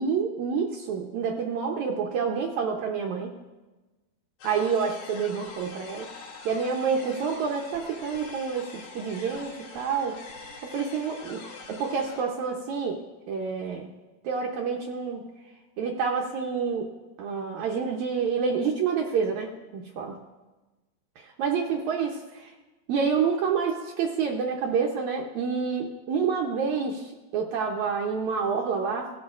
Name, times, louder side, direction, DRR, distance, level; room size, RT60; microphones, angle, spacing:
voice 1, 0.0-3.3 4.4-10.2 10.6-11.4 11.7-13.9 14.2-15.2 15.8-16.9 17.2-20.2 21.2-22.5 22.9-29.1, right 6 dB, 85° right, 0 dB, 1.6 m, -28 dB
sound 1, 4.4-12.2, left 4 dB, 85° left, 3.6 m, -44 dB
16.0 x 12.0 x 2.5 m, 1.2 s
omnidirectional pair, 4.4 m